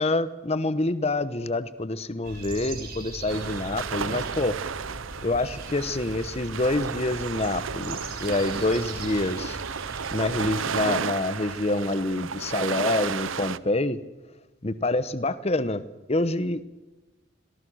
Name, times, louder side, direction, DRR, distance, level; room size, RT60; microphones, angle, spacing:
voice 1, 0.0-4.6 5.2-9.6 10.1-14.0 14.6-16.6, left 2 dB, 30° left, 15 dB, 0.9 m, -27 dB
sound 1, 2.2-10.7, right 2 dB, 45° right, 7.1 m, -40 dB
sound 2, 3.3-13.6, right 6 dB, 75° right, 0.8 m, -33 dB
28.5 x 22.5 x 6.3 m, 1.1 s
head